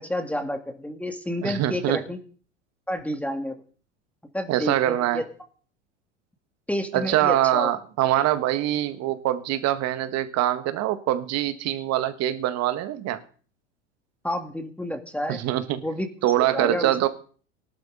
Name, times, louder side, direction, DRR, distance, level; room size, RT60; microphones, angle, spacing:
voice 1, 0.0-2.2 2.9-3.5 4.3-5.2 6.7-7.7 14.2-15.4 15.7-16.1 16.5-17.0, left 1 dB, 5° left, 6 dB, 2.1 m, -30 dB
voice 2, 1.4-2.0 4.5-5.2 6.9-13.2 15.3-15.8 16.2-17.1, right 13 dB, 45° right, 11 dB, 1.8 m, -24 dB
18.5 x 12.0 x 4.0 m, 0.41 s
hypercardioid pair, 85°, 36 cm